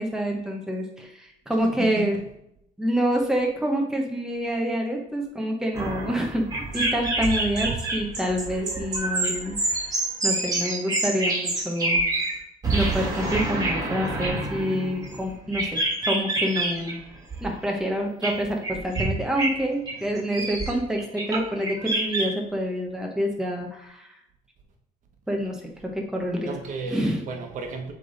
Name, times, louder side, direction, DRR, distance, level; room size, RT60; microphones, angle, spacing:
voice 1, 0.0-2.2 2.8-6.5 6.7-10.0 10.2-12.0 12.7-17.0 17.4-24.1 25.3-26.5 26.9-27.2, equal, 5° right, 0 dB, 1.0 m, -27 dB
voice 2, 1.6-2.3 26.4-27.9, right 4 dB, 55° right, 4 dB, 1.2 m, -34 dB
sound 1, 5.7-12.4 12.6-17.0 17.3-17.6 18.2-19.1 19.4-19.6 19.9-22.2, right 2 dB, 25° right, 1.5 m, -27 dB
7.5 x 3.5 x 4.0 m, 0.79 s
cardioid pair, 130°, 16 cm